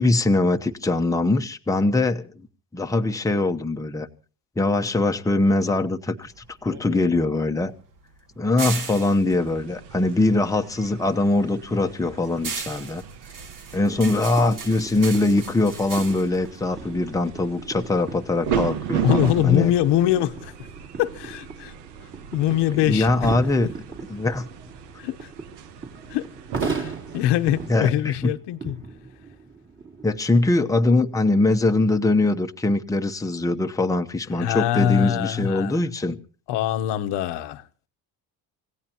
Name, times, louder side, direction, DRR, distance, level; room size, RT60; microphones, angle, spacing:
voice 1, 0.0-2.3 2.7-4.1 4.6-6.3 6.6-7.7 8.4-13.0 13.7-19.7 22.9-23.7 24.1-24.5 27.7-28.1 30.0-36.2, left 2 dB, 10° left, 1.0 m, -22 dB
sound 1, 6.2-10.7 11.1-17.5, right 5 dB, 50° right, 2.3 m, -37 dB
sound 2, 9.3-27.8, right 9 dB, 80° right, 1.4 m, -35 dB
sound 3, 13.8-30.2, right 4 dB, 30° right, 3.5 m, -38 dB
voice 2, 19.0-20.7 21.0-21.7 22.3-23.3 25.0-25.3 26.1-26.3 26.6-28.8 34.4-35.8 36.5-37.6, left 12 dB, 85° left, 1.1 m, -23 dB
26.5 x 16.5 x 3.0 m
cardioid pair, 115°, 40 cm